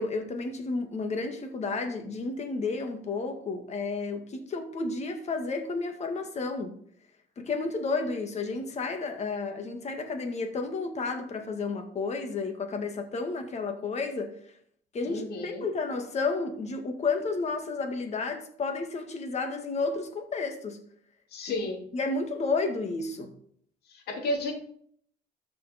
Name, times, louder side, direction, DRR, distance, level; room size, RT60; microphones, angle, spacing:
voice 1, 0.0-6.7 7.4-14.4 14.9-20.8 21.5-21.6 21.9-23.3, left 3 dB, 40° left, 1.8 m, -31 dB
voice 2, 15.0-15.7 21.3-21.8 23.9-24.5, left 2 dB, 70° left, 2.6 m, -32 dB
13.0 x 5.7 x 4.3 m
cardioid pair, 110°, 17 cm